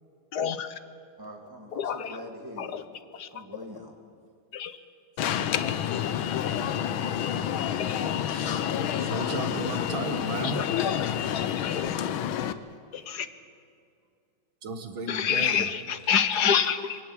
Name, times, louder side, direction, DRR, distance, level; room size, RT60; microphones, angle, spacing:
voice 1, 0.3-0.8 1.7-2.2 2.6-2.8 3.1-3.3 4.5-4.7 7.8-8.0 10.4-12.0 12.9-13.3 15.1-17.0, left 7 dB, 60° left, 11 dB, 1.4 m, -28 dB
voice 2, 1.2-2.8 3.3-3.9, equal, 10° right, 1 dB, 2.6 m, -43 dB
Alarm, 5.2-12.5, left 9 dB, 80° left, 1.7 m, -28 dB
voice 3, 8.3-10.6 14.6-15.7, right 4 dB, 75° right, 8 dB, 2.3 m, -35 dB
24.0 x 17.5 x 8.4 m, 2.3 s
omnidirectional pair, 2.2 m